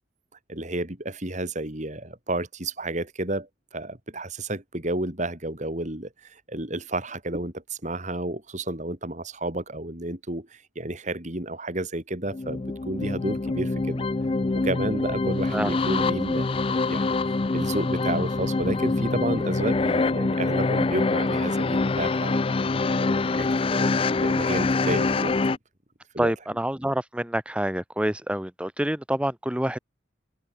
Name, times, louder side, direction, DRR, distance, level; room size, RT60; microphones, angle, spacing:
voice 1, 0.5-14.1 14.5-17.2 17.5-25.3 26.1-26.3, right 1 dB, 40° right, 3.2 m, -31 dB
sound 1, 12.3-25.6, left 3 dB, 30° left, 0.4 m, -25 dB
voice 2, 26.2-29.8, right 1 dB, 5° right, 0.8 m, -27 dB
head